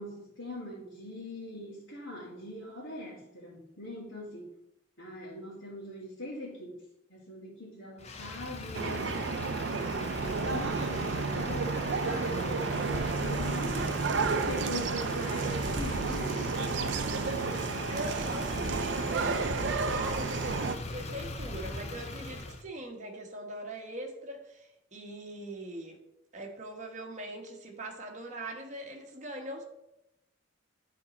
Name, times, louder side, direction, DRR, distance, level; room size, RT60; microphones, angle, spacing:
voice 1, 0.0-4.5 5.0-6.8 7.1-9.1 9.7-16.5, left 1 dB, 80° left, -8 dB, 2.3 m, -42 dB
Motor vehicle (road), 8.0-22.6, left 2 dB, 35° left, 0.6 m, -39 dB
sound 1, 8.7-20.8, right 4 dB, 60° right, 0.4 m, -31 dB
voice 2, 17.9-26.0 26.3-29.6, right 1 dB, 35° right, 1 dB, 1.2 m, -41 dB
9.7 x 4.1 x 4.2 m, 0.86 s
head